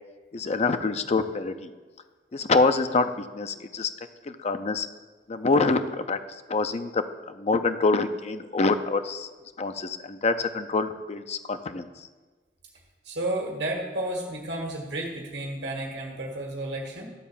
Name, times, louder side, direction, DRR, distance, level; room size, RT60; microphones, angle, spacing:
voice 1, 0.3-1.7 2.3-3.9 4.3-4.9 5.3-6.2 6.5-7.0 7.3-9.3 9.6-11.9, left 3 dB, 40° left, 9 dB, 0.5 m, -25 dB
voice 2, 13.0-17.1, right 1 dB, 75° right, 0 dB, 1.7 m, -32 dB
12.5 x 4.1 x 7.2 m, 1.3 s
head